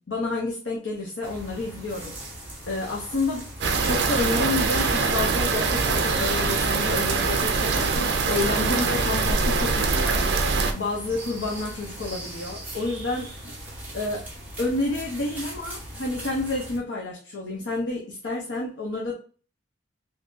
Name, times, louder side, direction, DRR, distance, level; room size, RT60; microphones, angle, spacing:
voice 1, 0.0-2.1 2.7-3.5 3.8-13.6 13.9-14.3 14.6-19.2, left 2 dB, 70° left, -2 dB, 0.7 m, -30 dB
sound 1, 1.2-16.8, right 1 dB, 10° right, 0.8 m, -40 dB
sound 2, 3.6-10.7, right 4 dB, 60° right, 0.4 m, -23 dB
3.6 x 2.7 x 2.5 m, 0.40 s
head